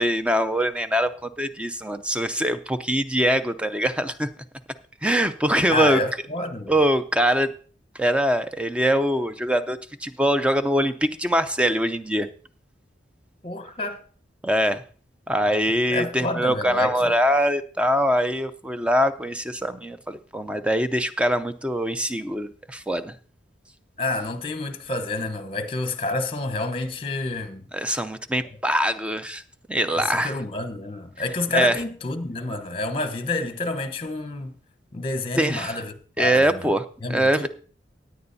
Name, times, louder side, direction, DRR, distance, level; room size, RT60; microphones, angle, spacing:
voice 1, 0.0-4.3 5.0-6.0 6.7-7.5 7.9-12.3 14.4-14.8 15.3-23.1 27.7-29.4 29.7-30.4 31.5-31.8 35.4-35.8 36.2-37.5, equal, 5° right, 0.5 m, -23 dB
voice 2, 5.7-6.7 13.4-14.0 15.9-17.1 24.0-27.6 29.9-34.5 34.9-36.7 37.0-37.5, left 2 dB, 30° left, 1.0 m, -29 dB
16.5 x 9.7 x 2.7 m
head